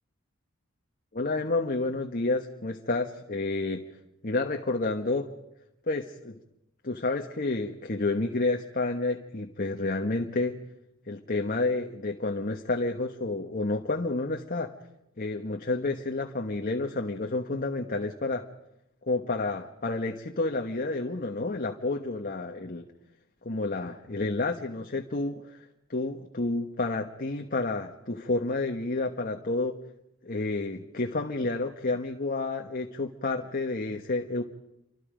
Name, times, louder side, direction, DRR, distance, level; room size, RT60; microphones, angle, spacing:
voice 1, 1.1-3.8 4.2-5.3 5.9-6.4 6.8-10.6 11.1-14.7 15.2-18.5 19.1-22.8 23.4-29.8 30.2-34.4, left 2 dB, 45° left, 3 dB, 1.3 m, -30 dB
29.5 x 25.0 x 5.2 m, 0.87 s
head